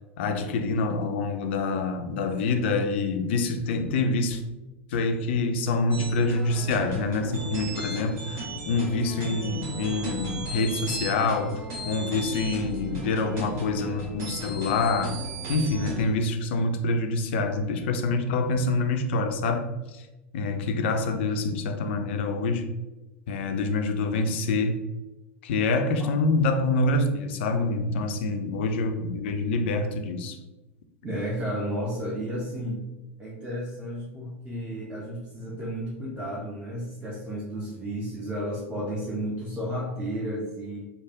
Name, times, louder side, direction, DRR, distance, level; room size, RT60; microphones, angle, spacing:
voice 1, 0.2-4.4 4.9-11.6 11.8-15.1 15.5-20.1 20.3-22.7 23.3-24.8 25.4-30.4, left 3 dB, 55° left, 5 dB, 0.4 m, -26 dB
sound 1, 5.9-16.1, right 1 dB, 45° right, 0.9 m, -35 dB
voice 2, 31.0-32.8 33.2-40.8, equal, 15° right, -4 dB, 0.7 m, -32 dB
3.3 x 2.1 x 3.5 m, 1.0 s
figure-of-eight pair, 80°, 7 cm